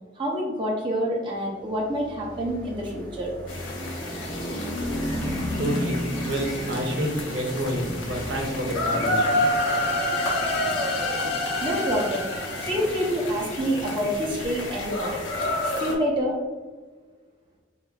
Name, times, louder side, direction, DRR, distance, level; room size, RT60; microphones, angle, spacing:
voice 1, 0.2-3.3 11.6-15.2 15.8-16.4, equal, 25° right, -3 dB, 0.6 m, -27 dB
sound 1, 1.8-15.0, equal, 5° left, 1.1 m, -35 dB
sound 2, 3.5-15.9, left 1 dB, 85° left, 0.9 m, -30 dB
voice 2, 5.6-9.4, right 1 dB, 80° right, 1 dB, 0.8 m, -29 dB
sound 3, 8.9-13.7, left 2 dB, 55° left, 0.6 m, -31 dB
3.8 x 3.7 x 2.3 m, 1.4 s
head